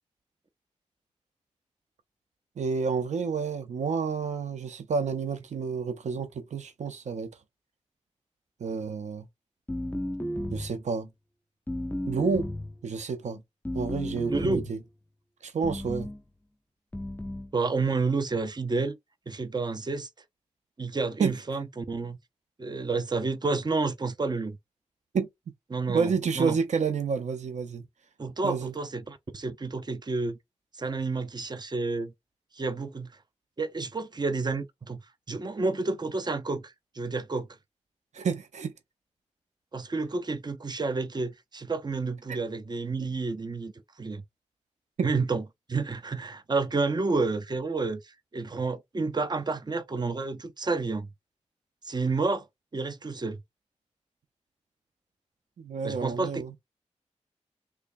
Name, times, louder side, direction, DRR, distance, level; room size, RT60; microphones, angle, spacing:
voice 1, 2.6-7.3 8.6-9.3 10.5-11.1 12.1-12.5 12.8-13.4 13.7-14.8 15.4-16.1 21.2-21.4 25.1-25.3 25.9-27.8 28.4-28.7 38.1-38.7 42.3-42.4 55.6-56.5, right 5 dB, 85° right, 0.5 m, -29 dB
sound 1, 9.7-10.8 11.7-12.8 13.7-14.8 15.6-16.2 16.9-17.5, equal, 15° left, 0.6 m, -33 dB
voice 2, 14.3-14.6 17.5-19.0 19.3-20.1 20.8-22.2 22.6-24.6 25.7-26.6 28.2-30.4 30.8-32.1 32.5-33.1 33.6-35.0 35.3-37.5 39.7-43.7 44.0-44.2 45.0-45.4 45.7-48.0 48.3-51.1 51.9-52.4 52.7-53.4 55.8-56.6, right 3 dB, 35° right, 0.6 m, -30 dB
3.4 x 3.2 x 2.5 m
cardioid pair, 45°, 12 cm